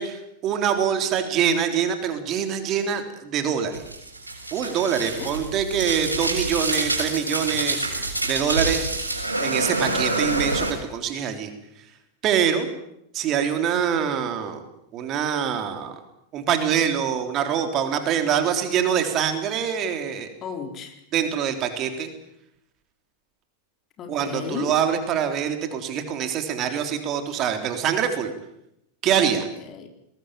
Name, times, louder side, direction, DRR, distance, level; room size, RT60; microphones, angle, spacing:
voice 1, 0.0-3.8 4.5-7.9 8.2-8.9 9.4-11.5 12.2-12.7 13.1-14.6 14.9-15.9 16.3-20.3 21.1-22.1 24.1-28.3 29.0-29.5, right 8 dB, 35° right, 7 dB, 3.6 m, -24 dB
sound 1, 3.7-10.7, right 2 dB, 80° right, 6.9 m, -27 dB
voice 2, 4.9-5.3 20.4-21.0 24.0-24.7 29.2-29.9, left 6 dB, 30° left, 5 dB, 4.1 m, -35 dB
22.5 x 20.0 x 9.1 m, 0.79 s
figure-of-eight pair, 90°, 0 cm